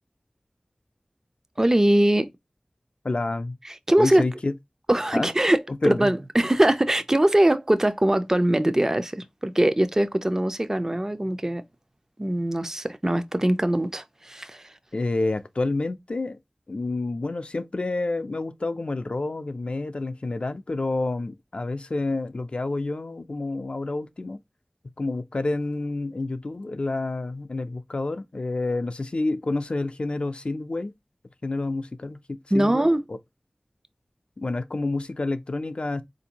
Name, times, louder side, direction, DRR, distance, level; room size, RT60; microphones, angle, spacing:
voice 1, 1.6-2.3 3.6-4.2 4.9-11.6 12.2-14.7 32.5-33.0, right 1 dB, 20° right, 0.4 m, -22 dB
voice 2, 3.0-3.6 4.0-4.5 5.1-5.3 5.7-6.1 14.9-16.4 16.7-24.4 25.0-30.9 31.4-33.2 34.4-36.0, left 2 dB, 55° left, 0.4 m, -29 dB
4.1 x 2.6 x 2.8 m
wide cardioid pair, 60°, 2 cm